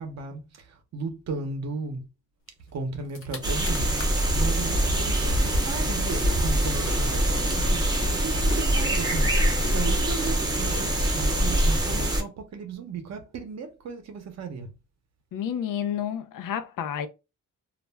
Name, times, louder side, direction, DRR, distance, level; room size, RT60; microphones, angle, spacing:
voice 1, 0.0-2.1 2.7-14.7, right 4 dB, 55° right, 0.7 m, -36 dB
sound 1, 2.7-2.8 3.0-4.3 4.8-11.5, left 3 dB, 45° left, 0.7 m, -42 dB
sound 2, 3.4-12.2, right 1 dB, 15° right, 0.5 m, -24 dB
voice 2, 15.3-17.1, left 9 dB, 90° left, 0.5 m, -30 dB
2.4 x 2.1 x 3.3 m
wide cardioid pair, 175°, 31 cm